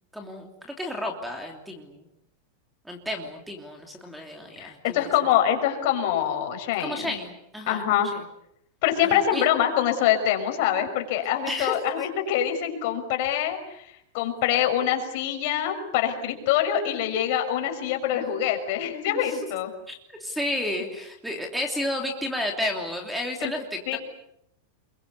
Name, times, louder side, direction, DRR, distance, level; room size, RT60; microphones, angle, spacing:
voice 1, 0.1-2.1 2.8-5.1 6.8-8.2 9.0-9.5 11.5-11.8 18.1-18.2 19.1-19.4 19.9-24.0, left 1 dB, 5° right, 4 dB, 3.0 m, -32 dB
voice 2, 4.6-7.1 7.7-8.1 8.8-13.9 14.1-19.7 23.4-23.5 23.9-24.0, left 10 dB, 50° left, 5 dB, 5.9 m, -25 dB
28.5 x 23.0 x 8.3 m, 0.77 s
supercardioid pair, 165°, 0 cm